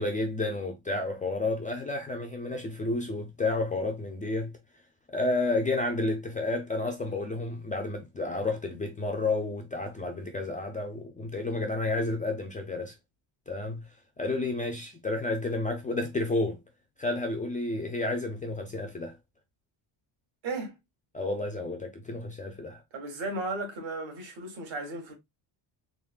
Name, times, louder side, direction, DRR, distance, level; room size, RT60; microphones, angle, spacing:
voice 1, 0.0-4.5 5.1-12.9 13.5-13.8 14.2-16.6 17.0-19.2 21.1-22.8, left 2 dB, 20° left, 0.3 m, -31 dB
voice 2, 20.4-20.8 22.9-25.1, right 2 dB, 65° right, 1.6 m, -35 dB
3.7 x 3.6 x 2.3 m
cardioid pair, 170°, 49 cm